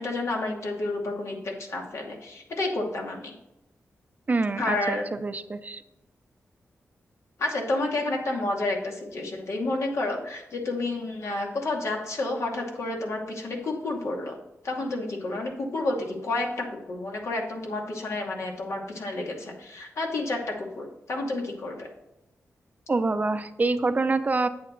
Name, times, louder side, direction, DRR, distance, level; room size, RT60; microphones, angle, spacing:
voice 1, 0.0-3.3 4.6-5.1 7.4-14.4 14.6-21.9, left 2 dB, 70° left, 0 dB, 2.4 m, -30 dB
voice 2, 4.3-5.8 22.9-24.5, right 3 dB, 30° right, 10 dB, 0.6 m, -26 dB
8.7 x 8.5 x 3.9 m, 0.90 s
wide cardioid pair, 100°, 5 cm